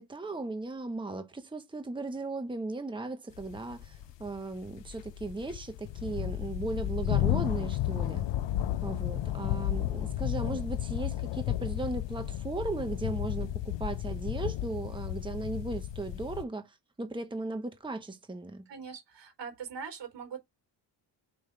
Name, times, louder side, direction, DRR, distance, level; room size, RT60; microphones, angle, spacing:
voice 1, 0.0-8.2 8.8-18.6, right 3 dB, 10° right, 1.1 m, -37 dB
sound 1, 3.4-16.4, left 12 dB, 85° left, 0.6 m, -33 dB
voice 2, 18.7-20.4, right 6 dB, 80° right, 3.6 m, -42 dB
5.3 x 5.3 x 3.4 m
cardioid pair, 100°, 42 cm